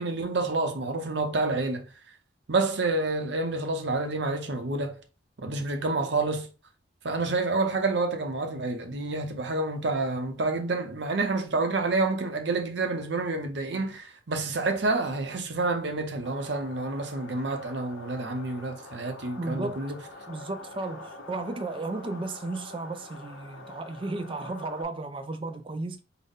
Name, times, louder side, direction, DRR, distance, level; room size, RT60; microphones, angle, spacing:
voice 1, 0.0-1.9 2.5-5.0 5.4-6.5 7.0-20.0, right 3 dB, 60° right, 0.6 m, -28 dB
sound 1, 16.2-24.8, left 2 dB, 85° left, 0.9 m, -45 dB
voice 2, 19.4-19.8 20.3-26.0, right 2 dB, 25° right, 0.3 m, -34 dB
3.9 x 2.1 x 3.6 m
head